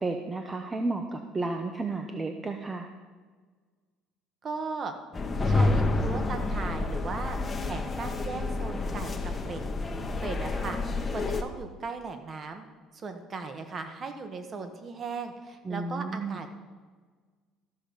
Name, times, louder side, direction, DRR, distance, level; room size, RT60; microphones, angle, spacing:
voice 1, 0.0-2.9 15.6-16.4, right 3 dB, 20° right, 5 dB, 0.7 m, -32 dB
voice 2, 4.4-4.9 5.4-9.6 10.2-10.8 11.1-12.6 12.9-16.5, right 4 dB, 35° right, 7 dB, 1.3 m, -37 dB
sound 1, 5.1-11.4, left 2 dB, 25° left, 1.0 m, -29 dB
13.5 x 6.2 x 5.3 m, 1.5 s
cardioid pair, 110°, 0 cm